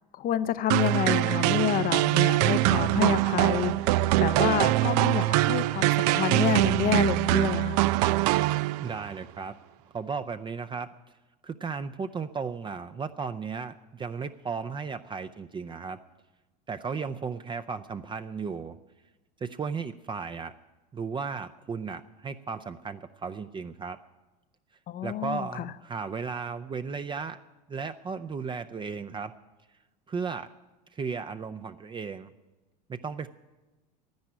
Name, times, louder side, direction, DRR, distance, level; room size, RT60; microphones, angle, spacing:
voice 1, 0.1-7.8 24.9-25.7, left 11 dB, 40° left, 14 dB, 0.7 m, -29 dB
sound 1, 0.7-9.1, right 17 dB, 70° right, 0.5 m, -23 dB
voice 2, 8.8-9.5 9.9-10.9 11.4-16.0 16.7-18.8 19.4-20.5 20.9-24.0 25.0-27.4 27.7-29.3 30.1-30.5 30.9-32.3 32.9-33.3, right 5 dB, 20° right, 9 dB, 0.6 m, -35 dB
11.0 x 10.5 x 9.8 m, 1.1 s
hypercardioid pair, 90°, 21 cm